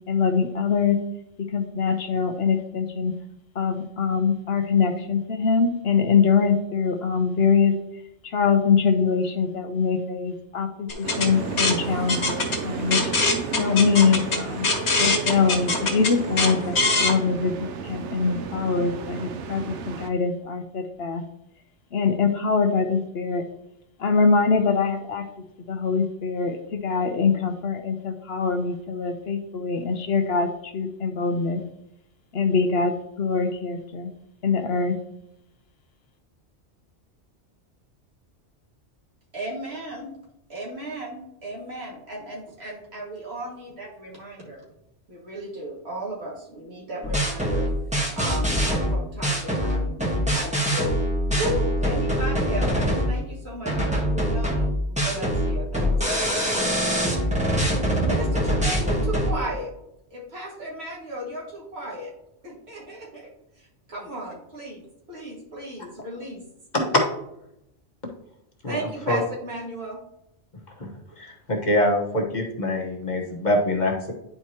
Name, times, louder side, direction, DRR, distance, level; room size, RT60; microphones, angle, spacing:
voice 1, 0.1-1.0 1.5-3.1 3.5-7.7 8.2-13.0 13.6-14.7 15.0-21.2 21.9-23.4 24.0-25.2 25.7-31.6 32.3-34.1 34.4-34.9, left 5 dB, 65° left, 6 dB, 0.9 m, -23 dB
sound 1, 10.9-17.1, left 3 dB, 80° left, 1.7 m, -24 dB
sound 2, 11.0-20.1, right 6 dB, 85° right, 0.9 m, -33 dB
voice 2, 39.3-40.1 40.5-44.6 45.1-47.7 48.1-50.0 50.3-51.0 51.3-54.7 55.0-56.5 58.0-59.7 60.1-62.1 62.4-63.3 63.6-64.8 65.1-66.4 68.7-70.0, right 1 dB, 65° right, -4 dB, 2.2 m, -35 dB
sound 3, 47.0-53.2 53.7-59.3, equal, 5° right, 1.2 m, -24 dB
voice 3, 71.2-74.1, left 1 dB, 40° left, -1 dB, 1.3 m, -24 dB
10.0 x 4.6 x 2.8 m, 0.82 s
omnidirectional pair, 1.2 m